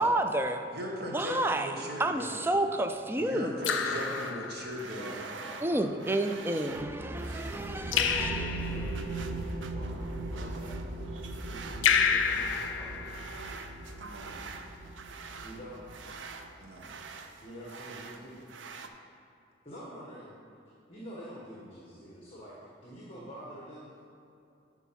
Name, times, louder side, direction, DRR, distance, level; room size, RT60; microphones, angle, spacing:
voice 1, 0.0-0.6 1.1-1.7 2.0-3.6 5.6-8.4, right 1 dB, 10° right, 7 dB, 0.4 m, -30 dB
voice 2, 0.7-2.5 3.1-5.2 14.0-14.4 16.6-17.0, equal, 55° right, -1 dB, 1.4 m, -38 dB
Raindrop / Drip, 1.8-2.3 3.6-5.0 7.9-9.0 11.8-13.6, left 7 dB, 80° left, 0.6 m, -29 dB
sound 1, 3.6-18.9, right 4 dB, 70° right, 0.6 m, -46 dB
voice 3, 3.7-4.2 4.9-6.0 6.4-10.8 11.4-13.1 15.4-15.8 17.4-18.5 19.6-20.3 20.9-22.6 22.8-23.9, equal, 30° left, -5 dB, 1.4 m, -47 dB
sound 2, 6.7-16.7, right 2 dB, 40° right, 0.8 m, -40 dB
10.0 x 4.6 x 5.8 m, 2.5 s
head